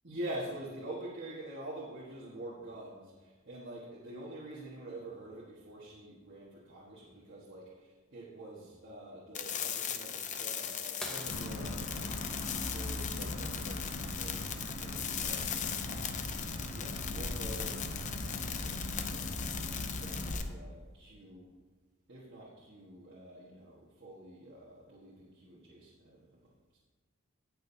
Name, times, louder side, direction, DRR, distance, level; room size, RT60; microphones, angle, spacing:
voice 1, 0.0-16.3 16.7-17.8 18.2-21.5 22.1-26.8, right 1 dB, 55° right, -7 dB, 1.5 m, -46 dB
sound 1, 9.3-20.4, left 8 dB, 35° left, 0.6 m, -39 dB
sound 2, 11.0-13.5 15.4-15.5 17.7-17.8 19.5-19.8 20.6-20.7, equal, 5° left, 0.9 m, -47 dB
sound 3, 11.3-20.3, left 1 dB, 75° left, 2.0 m, -40 dB
17.5 x 6.4 x 2.8 m, 1.4 s
head